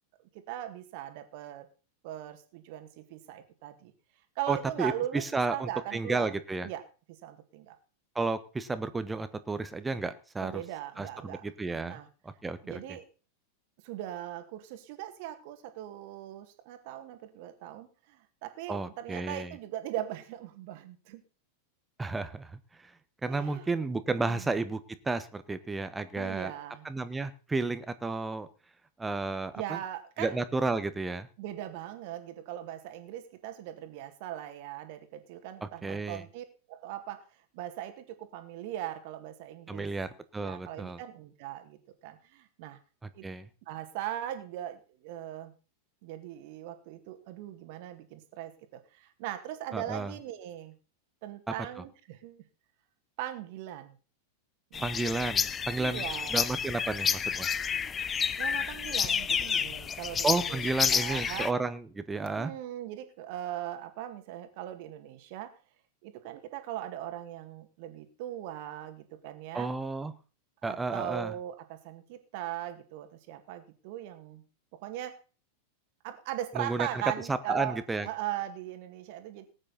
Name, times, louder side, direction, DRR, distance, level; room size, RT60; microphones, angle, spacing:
voice 1, 0.5-1.7 2.0-3.9 4.4-6.4 6.6-6.8 7.1-7.8 10.4-11.4 11.8-12.1 12.6-13.0 13.8-21.2 23.3-23.7 24.3-24.5 26.1-26.9 29.5-30.4 31.4-37.3 37.5-39.9 40.4-42.8 43.1-43.2 43.7-45.5 46.0-50.7 51.2-52.4 53.2-53.9 54.7-55.0 55.8-56.5 58.3-60.6 60.9-61.5 62.2-65.5 66.0-69.7 70.6-74.4 74.7-75.2 76.0-79.4, right 12 dB, 45° right, 8 dB, 2.1 m, -39 dB
voice 2, 4.5-6.7 8.1-10.6 11.0-12.0 12.2-12.8 18.7-19.5 22.0-22.6 23.2-24.8 25.0-26.5 26.8-28.5 29.0-29.8 30.2-31.3 35.6-36.2 39.7-41.0 43.2-43.5 49.7-50.1 54.8-56.0 56.3-57.5 60.2-62.5 69.5-70.1 70.6-71.3 76.6-77.0 77.3-78.1, right 3 dB, 10° right, 12 dB, 1.2 m, -32 dB
sound 1, 54.7-61.5, left 7 dB, 20° left, 0.6 m, -30 dB
19.0 x 8.9 x 4.2 m, 0.35 s
figure-of-eight pair, 90°, 0 cm